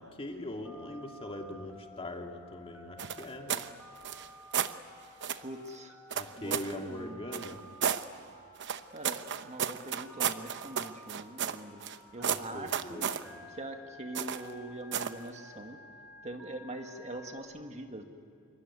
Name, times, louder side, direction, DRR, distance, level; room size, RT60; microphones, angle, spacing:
voice 1, 0.0-3.7 6.1-7.6 12.3-13.4, left 1 dB, 25° left, 3 dB, 2.1 m, -41 dB
Telephone, 0.6-17.4, left 1 dB, 5° right, 3.2 m, -53 dB
sound 1, 3.0-3.7 4.0-4.8 5.2-5.5 6.1-6.8 7.3-8.0 8.6-12.0 12.2-13.2 14.1-14.5 14.9-15.2, right 8 dB, 55° right, 0.9 m, -33 dB
voice 2, 5.4-5.9 6.4-7.5 8.9-11.8 12.1-13.1 13.5-15.8 16.2-18.0, right 1 dB, 30° right, 5 dB, 1.8 m, -43 dB
26.0 x 23.5 x 9.7 m, 2.5 s
head